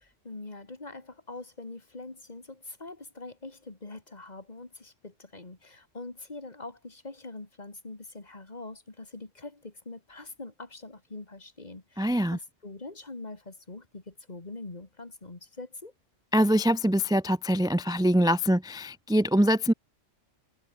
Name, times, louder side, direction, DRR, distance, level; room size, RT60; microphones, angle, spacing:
voice 1, 0.0-15.9, left 2 dB, 35° left, 2.3 m, -43 dB
voice 2, 12.0-12.4 16.3-19.7, equal, 5° right, 0.6 m, -24 dB
omnidirectional pair, 1.3 m